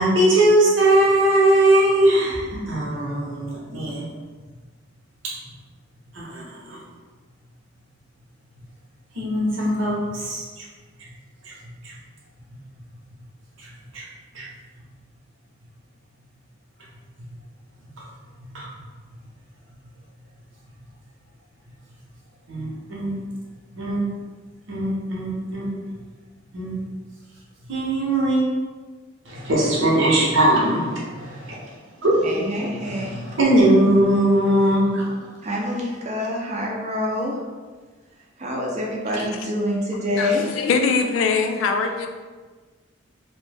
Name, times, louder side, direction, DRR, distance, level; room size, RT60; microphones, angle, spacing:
voice 1, 0.0-4.1 6.1-6.8 9.1-10.6 11.4-11.5 11.8-11.9 13.6-13.7 13.9-14.0 14.3-14.5 18.0-18.1 18.5-18.7 22.5-23.1 23.7-24.0 24.7-25.7 26.5-26.8 27.7-28.4 29.2-31.6 32.0-32.4 33.1-35.1, right 1 dB, 75° right, -6 dB, 0.9 m, -20 dB
voice 2, 32.2-33.4 35.4-37.4 38.4-40.5, left 1 dB, 35° right, -2 dB, 0.5 m, -26 dB
voice 3, 40.2-42.1, left 5 dB, 80° left, 5 dB, 0.3 m, -22 dB
2.9 x 2.1 x 3.3 m, 1.4 s
head